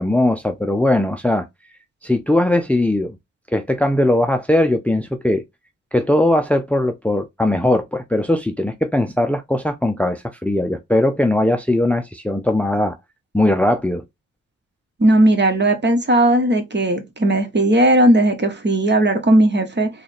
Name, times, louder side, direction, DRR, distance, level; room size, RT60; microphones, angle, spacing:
voice 1, 0.0-1.5 2.0-3.2 3.5-5.4 5.9-13.0 13.3-14.0, left 1 dB, 5° left, 0.6 m, -19 dB
voice 2, 15.0-19.9, right 1 dB, 35° right, 1.3 m, -16 dB
3.6 x 2.4 x 3.4 m
supercardioid pair, 50°, 29 cm